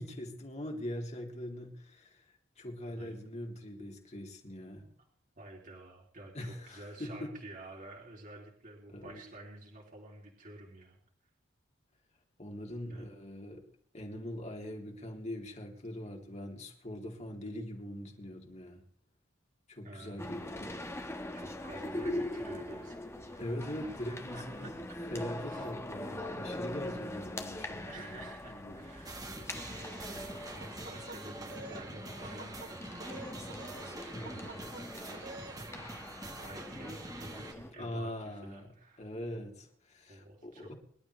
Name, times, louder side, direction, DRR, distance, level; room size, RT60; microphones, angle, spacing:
voice 1, 0.0-4.9 6.3-7.4 8.9-9.2 12.4-13.6 13.9-18.8 19.7-20.8 23.4-24.7 25.1-28.8 34.1-34.6 37.8-38.7 39.0-40.7, left 1 dB, 35° left, 1 dB, 3.2 m, -42 dB
voice 2, 4.7-5.0 5.3-11.0 12.9-13.1 19.8-20.2 21.3-23.0 23.3-23.7 24.3-25.0 25.3-25.7 27.6-29.3 29.7-34.7 35.5-36.0 36.3-39.6 40.1-40.7, right 2 dB, 45° right, -1 dB, 3.2 m, -51 dB
sound 1, 20.2-37.7, left 1 dB, 15° left, 1.6 m, -42 dB
sound 2, 29.1-37.5, right 2 dB, 20° right, 1.8 m, -46 dB
sound 3, 30.6-31.9 32.2-32.7 33.0-33.9 34.3-34.8 35.1-35.6, right 2 dB, 65° right, 2.4 m, -48 dB
25.0 x 12.5 x 3.4 m, 0.65 s
head